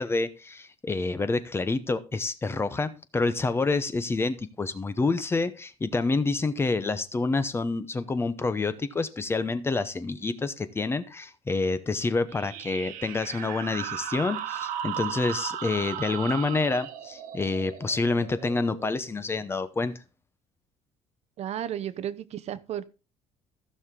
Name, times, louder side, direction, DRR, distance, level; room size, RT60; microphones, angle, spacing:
voice 1, 0.0-20.0, left 3 dB, 15° left, 0.8 m, -28 dB
sound 1, 12.3-19.5, right 10 dB, 85° right, 1.2 m, -36 dB
voice 2, 21.4-22.8, right 10 dB, 50° right, 0.7 m, -33 dB
15.0 x 6.5 x 3.7 m
cardioid pair, 150°, 14 cm